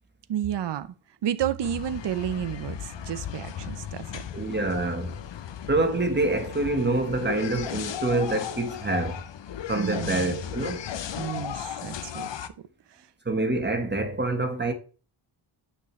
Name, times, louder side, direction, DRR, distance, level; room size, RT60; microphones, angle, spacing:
voice 1, 0.3-0.9 1.2-4.2 9.7-10.4 11.2-12.5 12.9-13.1, right 10 dB, 55° right, 0.7 m, -31 dB
sound 1, 1.6-12.5, left 9 dB, 60° left, 0.8 m, -36 dB
voice 2, 4.3-5.1 5.7-9.2 9.7-10.8 13.2-14.7, right 2 dB, 20° right, 1.3 m, -26 dB
8.4 x 6.0 x 3.2 m
wide cardioid pair, 120°, 50 cm